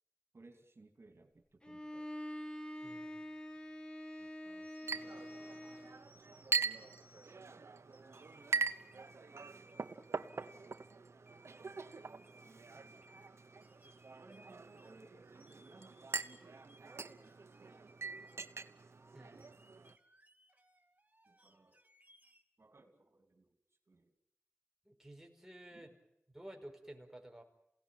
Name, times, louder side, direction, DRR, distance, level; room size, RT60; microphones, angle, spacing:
voice 1, 0.3-2.1 4.2-5.3 6.3-9.7 11.5-13.3 14.2-17.9 18.2-18.7 21.3-21.8 22.6-23.5 23.9-24.1 25.7-25.9, right 2 dB, 70° right, 5 dB, 2.7 m, -63 dB
Bowed string instrument, 1.6-6.0, equal, 20° left, 2.2 m, -46 dB
voice 2, 2.8-3.2 19.1-19.5 24.8-25.9 26.3-27.4, right 1 dB, 10° right, 3 dB, 4.9 m, -53 dB
sound 1, 4.6-7.4 7.9-10.9 11.3-18.4 18.8-22.4, right 1 dB, 35° right, 2.6 m, -66 dB
Chink clink, 4.9-19.9, right 4 dB, 90° right, 1.0 m, -43 dB
28.0 x 17.5 x 9.1 m, 0.82 s
wide cardioid pair, 60°, 5 cm